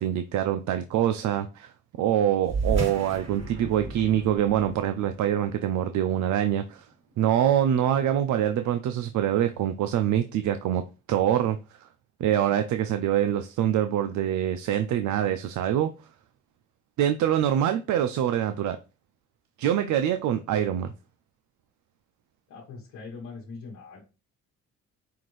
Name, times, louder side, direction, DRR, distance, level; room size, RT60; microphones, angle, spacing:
voice 1, 0.0-6.9 7.2-10.8 11.1-11.9 12.2-15.9 17.0-18.8 19.6-20.9, right 10 dB, 70° right, 9 dB, 0.5 m, -25 dB
sound 1, 2.4-7.3, right 4 dB, 40° right, 2.7 m, -34 dB
voice 2, 22.5-24.0, left 4 dB, 85° left, -4 dB, 1.2 m, -42 dB
5.7 x 2.6 x 3.1 m, 0.31 s
cardioid pair, 90°, 30 cm